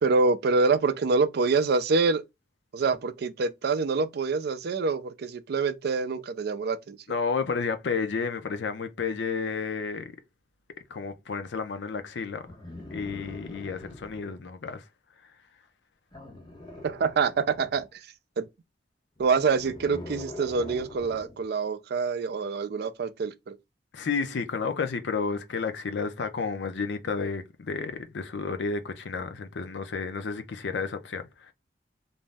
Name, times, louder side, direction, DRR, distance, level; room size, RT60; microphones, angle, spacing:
voice 1, 0.0-2.2 2.7-7.0 16.8-18.0 18.4-18.5 19.2-23.6, right 4 dB, 60° right, 0.4 m, -26 dB
voice 2, 7.1-10.1 10.9-12.4 12.9-14.8 23.9-31.5, left 5 dB, 75° left, 0.5 m, -31 dB
sound 1, 12.4-14.4 16.1-17.8 19.1-21.4 22.8-22.9, left 2 dB, 25° left, 0.8 m, -43 dB
2.6 x 2.0 x 3.3 m
head